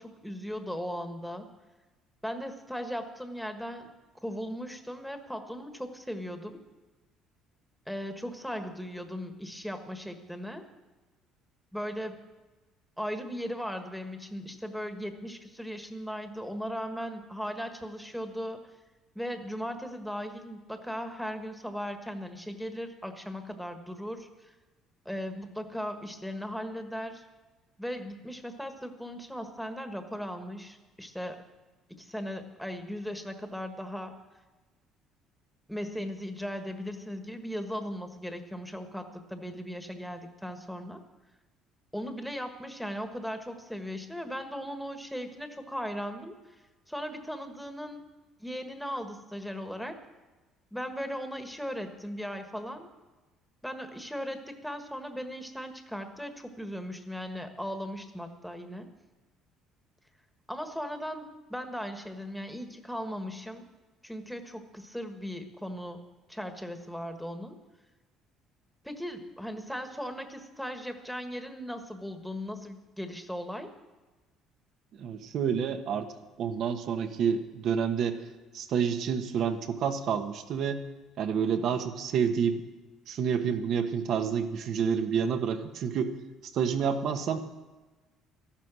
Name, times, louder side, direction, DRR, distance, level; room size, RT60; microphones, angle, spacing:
voice 1, 0.0-1.5 2.2-3.9 4.2-6.6 7.9-10.7 11.7-12.2 13.0-18.6 19.1-24.5 25.0-27.2 27.8-31.4 31.9-34.2 35.7-41.0 41.9-46.3 46.9-48.0 48.4-50.0 50.7-52.9 53.6-58.9 60.5-63.7 64.0-66.0 66.3-67.6 68.8-73.7, equal, ahead, 7 dB, 1.4 m, -37 dB
voice 2, 74.9-76.1 76.4-78.2 78.5-80.8 81.2-82.6 83.1-86.1 86.4-87.4, right 7 dB, 60° right, 7 dB, 1.2 m, -29 dB
13.0 x 12.0 x 6.2 m, 1.2 s
cardioid pair, 115°, 0 cm